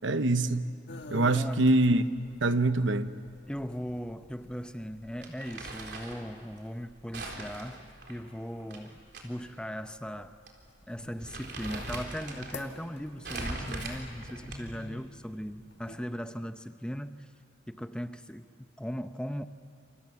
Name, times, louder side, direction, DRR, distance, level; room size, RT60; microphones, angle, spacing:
voice 1, 0.0-0.7 1.1-2.0 2.4-3.1, right 2 dB, 80° right, 1.0 m, -24 dB
sound 1, 0.9-15.9, left 1 dB, 60° left, 2.0 m, -49 dB
voice 2, 1.3-1.6 3.5-10.4 10.9-17.3 17.7-19.5, equal, 5° left, 0.7 m, -38 dB
Crumpling crinkling, 5.2-6.2 7.1-9.2 9.6-9.7 10.5-10.6 11.0-12.6 13.2-14.9, right 2 dB, 60° right, 3.9 m, -40 dB
29.5 x 28.0 x 7.1 m
head